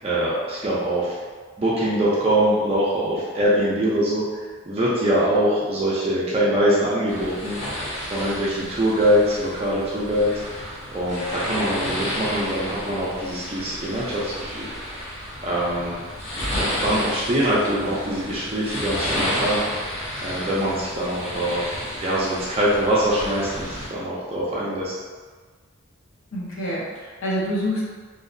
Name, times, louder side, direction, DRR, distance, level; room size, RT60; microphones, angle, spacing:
voice 1, 0.0-1.2 1.6-4.2 4.7-7.6 8.0-10.3 10.9-14.7 15.4-16.0 16.6-19.6 20.2-21.7 22.0-24.9, right 1 dB, 30° right, -7 dB, 0.4 m, -23 dB
sound 1, 7.1-23.9, equal, 35° left, 0.6 m, -31 dB
voice 2, 26.3-27.8, equal, 85° left, -6 dB, 0.7 m, -27 dB
2.7 x 2.0 x 2.5 m, 1.5 s
head